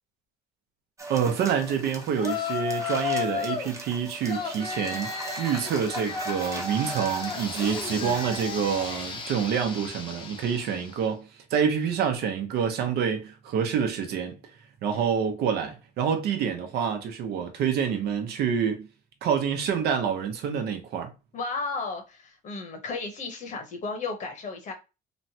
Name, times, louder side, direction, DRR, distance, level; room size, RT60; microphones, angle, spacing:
sound 1, 1.0-8.5, right 2 dB, 20° right, 0.7 m, -40 dB
voice 1, 1.1-14.4 14.8-18.9 19.2-21.1, right 7 dB, 70° right, 0.7 m, -27 dB
Yell, 2.2-3.7 4.3-11.0, left 5 dB, 30° left, 0.7 m, -33 dB
voice 2, 7.6-8.3 14.9-15.1 21.3-24.7, left 3 dB, 45° left, 1.0 m, -34 dB
3.1 x 2.1 x 2.7 m
cardioid pair, 110°, 17 cm